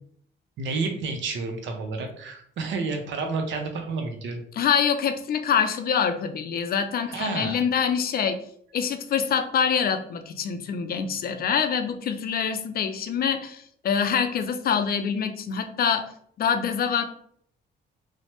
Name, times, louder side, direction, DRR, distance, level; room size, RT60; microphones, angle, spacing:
voice 1, 0.6-4.4 7.1-7.5, right 4 dB, 70° right, 4 dB, 0.6 m, -30 dB
voice 2, 4.5-8.4 8.7-16.1 16.4-17.0, left 7 dB, 50° left, 8 dB, 0.4 m, -25 dB
3.0 x 2.0 x 2.9 m, 0.64 s
cardioid pair, 90°, 20 cm